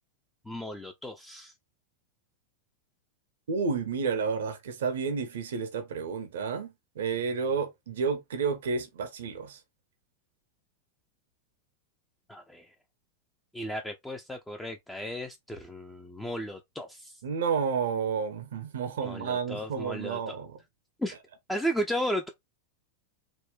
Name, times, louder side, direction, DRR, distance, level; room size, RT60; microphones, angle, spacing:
voice 1, 0.5-1.5 12.3-12.7 13.5-17.2 19.0-20.4 21.0-21.1 21.5-22.3, equal, 5° left, 0.4 m, -34 dB
voice 2, 3.5-9.6 17.2-20.6, right 5 dB, 60° right, 0.5 m, -31 dB
3.7 x 2.1 x 2.2 m
figure-of-eight pair, 90°, 0 cm